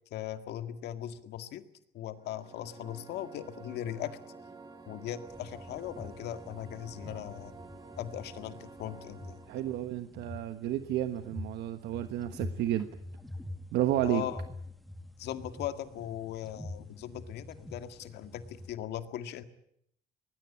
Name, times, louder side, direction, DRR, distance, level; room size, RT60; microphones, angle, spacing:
voice 1, 0.1-1.6 1.9-4.2 4.9-7.5 8.0-9.4 14.0-14.4 15.2-19.4, left 11 dB, 80° left, 9 dB, 2.0 m, -39 dB
sound 1, 2.1-9.9, right 3 dB, 25° right, 2.8 m, -50 dB
sound 2, 5.3-18.7, left 1 dB, ahead, 1.6 m, -46 dB
voice 2, 9.5-12.9 13.7-14.2, right 13 dB, 80° right, 9 dB, 1.3 m, -31 dB
24.5 x 20.0 x 8.6 m, 0.72 s
cardioid pair, 110°, 17 cm